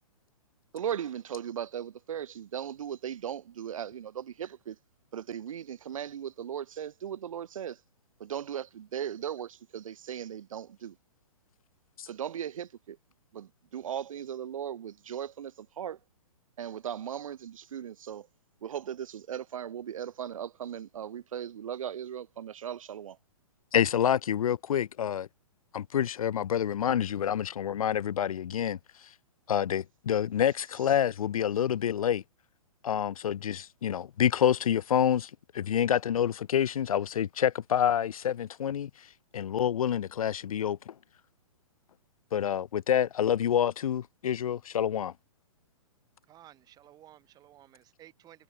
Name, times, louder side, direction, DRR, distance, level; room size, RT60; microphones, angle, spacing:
voice 1, 0.7-4.8 5.1-7.8 8.2-11.0 12.1-13.0 13.3-16.0 16.6-18.3 18.6-23.2, right 9 dB, 70° right, 1.1 m, -37 dB
voice 2, 23.7-25.3 25.7-28.8 29.5-32.2 32.8-38.9 39.3-40.9 42.3-45.1, left 9 dB, 85° left, 0.5 m, -27 dB
voice 3, 46.3-48.4, right 13 dB, 20° right, 5.0 m, -55 dB
hypercardioid pair, 140°, 18 cm